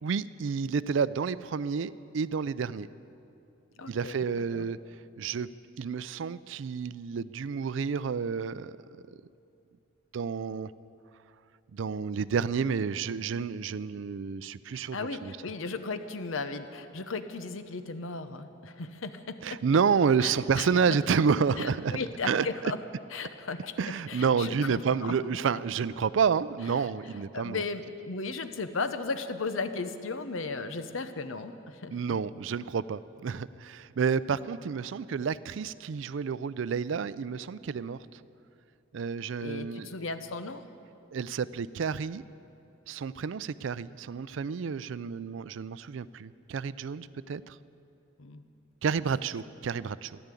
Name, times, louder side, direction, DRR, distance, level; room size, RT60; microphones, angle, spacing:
voice 1, 0.0-2.9 3.9-4.8 5.2-5.5 5.8-8.8 10.1-10.7 11.7-15.3 19.4-22.0 22.2-22.7 23.8-27.6 31.9-38.2 38.9-39.9 41.1-42.2 42.9-47.6 48.8-50.2, right 6 dB, 75° right, 17 dB, 0.4 m, -30 dB
voice 2, 3.8-4.3 4.5-4.7 14.7-19.6 20.2-21.0 21.6-22.8 23.1-23.8 24.1-24.8 27.3-32.0 39.4-40.6 48.2-48.4, left 4 dB, 90° left, 10 dB, 0.9 m, -36 dB
14.0 x 11.0 x 8.3 m, 2.7 s
head